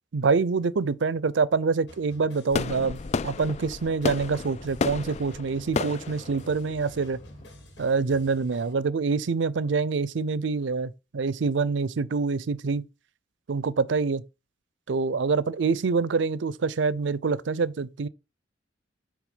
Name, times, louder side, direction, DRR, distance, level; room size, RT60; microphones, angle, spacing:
voice 1, 0.1-7.2 7.8-12.9 13.5-14.2 14.9-18.1, right 4 dB, 80° right, 0.5 m, -26 dB
sound 1, 1.9-8.7, left 1 dB, 65° left, 2.7 m, -51 dB
sound 2, 2.5-7.4, left 4 dB, 35° left, 0.3 m, -32 dB
sound 3, 4.1-8.7, right 1 dB, 20° left, 1.9 m, -52 dB
8.3 x 3.4 x 5.1 m
head